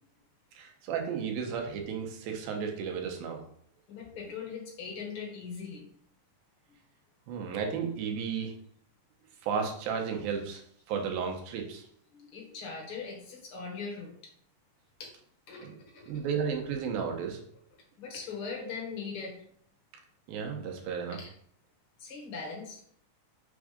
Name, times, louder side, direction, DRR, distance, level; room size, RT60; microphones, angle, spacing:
voice 1, 0.6-3.4 7.3-8.5 9.4-10.6 10.9-11.9 15.6-15.7 16.1-17.4 20.3-21.2, right 6 dB, 85° right, 3 dB, 2.7 m, -33 dB
voice 2, 3.9-5.9 12.1-14.3 15.0-15.1 15.5-16.2 18.0-19.4 21.1-21.3 22.0-23.0, left 5 dB, 65° left, 0 dB, 1.3 m, -40 dB
6.1 x 3.7 x 4.9 m, 0.65 s
omnidirectional pair, 4.2 m